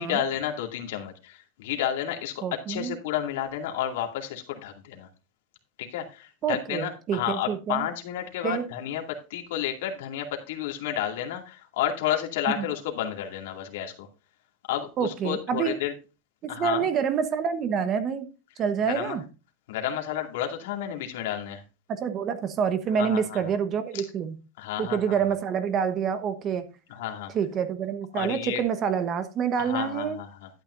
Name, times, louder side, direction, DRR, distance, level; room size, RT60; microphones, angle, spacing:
voice 1, 0.0-5.1 5.8-14.1 14.7-15.9 16.5-16.9 18.9-19.2 19.7-21.6 23.0-23.4 23.9-24.1 24.6-25.2 26.9-27.3 28.1-28.6 29.6-30.5, left 10 dB, 75° left, 2 dB, 2.3 m, -31 dB
voice 2, 2.4-2.9 6.4-7.9 8.4-8.7 12.6-12.7 15.0-15.7 16.4-18.3 18.6-19.2 21.9-24.3 24.8-26.7 27.3-30.2, right 7 dB, 30° right, 11 dB, 1.1 m, -27 dB
12.0 x 9.0 x 2.6 m, 0.31 s
supercardioid pair, 145°, 0 cm